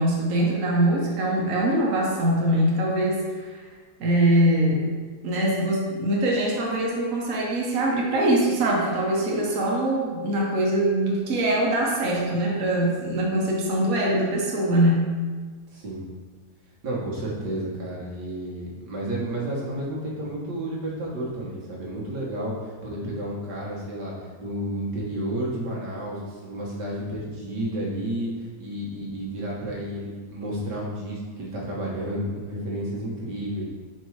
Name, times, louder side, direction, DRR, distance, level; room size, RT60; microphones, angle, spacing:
voice 1, 0.0-3.6 4.0-4.9 5.2-15.1, right 1 dB, 60° right, -3 dB, 1.5 m, -23 dB
voice 2, 15.7-16.0 16.8-33.7, right 1 dB, 90° right, -5 dB, 2.0 m, -31 dB
5.3 x 4.6 x 4.7 m, 1.5 s
omnidirectional pair, 1.8 m